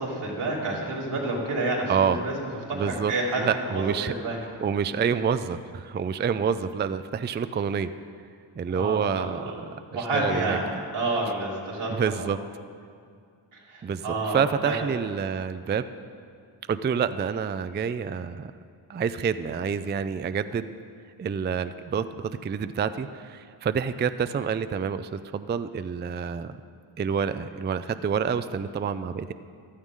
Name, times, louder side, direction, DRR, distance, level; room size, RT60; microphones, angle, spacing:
voice 1, 0.0-2.3 3.1-3.4 3.7-4.4 8.7-9.6 9.9-10.6 10.9-11.9 12.2-12.3 13.7-14.9, right 2 dB, 85° right, -4 dB, 2.9 m, -29 dB
voice 2, 1.9-2.2 2.7-3.1 3.4-4.1 4.6-7.9 8.6-9.5 9.9-10.8 11.9-12.4 13.8-15.9 16.7-18.5 18.9-20.7 21.2-26.5 27.0-29.3, right 7 dB, 25° right, 12 dB, 0.3 m, -28 dB
15.0 x 12.0 x 3.7 m, 2.2 s
cardioid pair, 70°, 48 cm